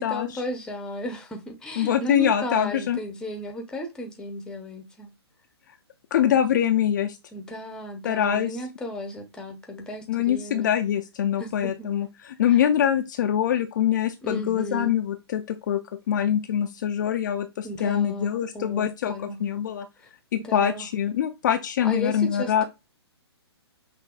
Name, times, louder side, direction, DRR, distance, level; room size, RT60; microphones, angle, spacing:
voice 1, 0.0-5.1 7.3-10.7 11.4-11.7 12.5-12.6 14.2-14.9 17.6-19.4 20.4-20.9 21.8-22.6, equal, 5° left, 0.8 m, -34 dB
voice 2, 1.8-3.0 6.1-7.2 8.0-8.6 10.1-15.8 16.1-19.9 20.3-22.6, left 9 dB, 45° left, 0.4 m, -24 dB
5.8 x 2.7 x 2.3 m
figure-of-eight pair, 130°, 14 cm